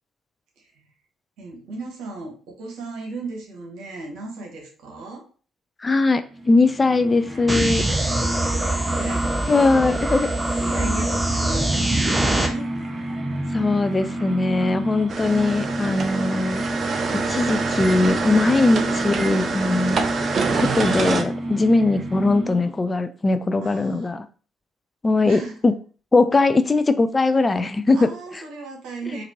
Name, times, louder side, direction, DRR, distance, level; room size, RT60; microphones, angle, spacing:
voice 1, 0.6-0.9 1.4-5.2 8.2-10.0 10.5-12.7 21.5-21.8 23.6-24.1 25.2-25.6 27.9-29.2, right 2 dB, 65° right, 2 dB, 1.1 m, -36 dB
voice 2, 5.8-8.0 9.5-10.3 13.5-16.6 17.3-20.0 20.5-24.3 25.0-25.7 26.1-28.1, left 3 dB, 30° left, 11 dB, 0.4 m, -20 dB
sound 1, 6.2-22.9, right 1 dB, 30° right, 1.2 m, -30 dB
sound 2, 7.5-12.5, right 1 dB, 15° right, 0.8 m, -23 dB
sound 3, 15.1-21.2, right 4 dB, 50° right, 0.5 m, -26 dB
4.2 x 2.6 x 2.9 m, 0.39 s
hypercardioid pair, 45°, 0 cm